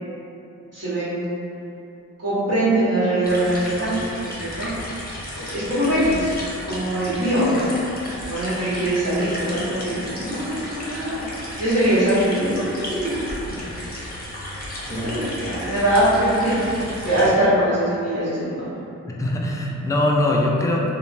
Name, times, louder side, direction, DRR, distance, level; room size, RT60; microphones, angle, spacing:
voice 1, 0.7-1.4 2.2-4.0 4.2-4.7 5.3-6.3 6.6-7.7 8.2-11.2 11.6-13.1 13.4-13.6 14.9-16.7 17.0-18.7, right 1 dB, 50° right, -14 dB, 1.3 m, -22 dB
sound 1, 3.2-17.3, left 1 dB, 30° left, 0.7 m, -33 dB
voice 2, 19.1-20.9, left 1 dB, 10° left, -2 dB, 0.3 m, -22 dB
2.9 x 2.1 x 2.5 m, 2.7 s
cardioid pair, 65°, 31 cm